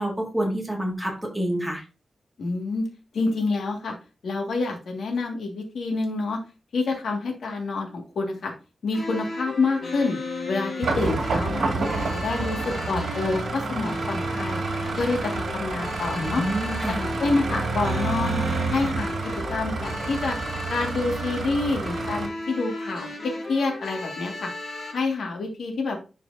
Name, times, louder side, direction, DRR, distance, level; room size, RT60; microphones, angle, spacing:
voice 1, 0.0-1.8 16.1-17.0, equal, 5° right, -1 dB, 2.1 m, -28 dB
voice 2, 2.4-2.9 3.1-4.0 4.2-6.4 6.7-8.5 8.8-10.2 10.5-14.6 15.0-16.4 16.9-19.1 19.5-20.4 20.7-24.5 24.9-26.0, left 3 dB, 90° left, 2 dB, 2.0 m, -27 dB
sound 1, 8.9-24.9, left 2 dB, 60° left, 2.4 m, -35 dB
sound 2, 10.8-22.3, right 4 dB, 75° right, 2.1 m, -29 dB
11.0 x 4.6 x 2.7 m, 0.32 s
wide cardioid pair, 155°, 0 cm